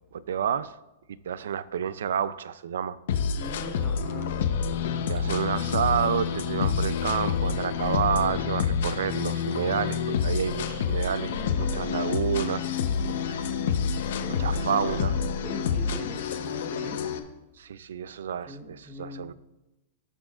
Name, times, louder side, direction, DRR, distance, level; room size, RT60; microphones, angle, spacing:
voice 1, 0.1-0.8 1.1-3.0 5.1-12.7 13.3-13.5 14.4-15.2 17.6-19.3, right 8 dB, 85° right, 17 dB, 0.4 m, -29 dB
sound 1, 3.1-17.2, left 6 dB, 65° left, 0.8 m, -28 dB
voice 2, 3.3-4.4 5.2-5.8 11.2-11.9 12.8-13.7 14.2-14.8 15.4-17.1 18.4-19.3, equal, 5° right, 1 dB, 1.2 m, -41 dB
17.5 x 6.2 x 2.5 m, 0.99 s
supercardioid pair, 170°, 0 cm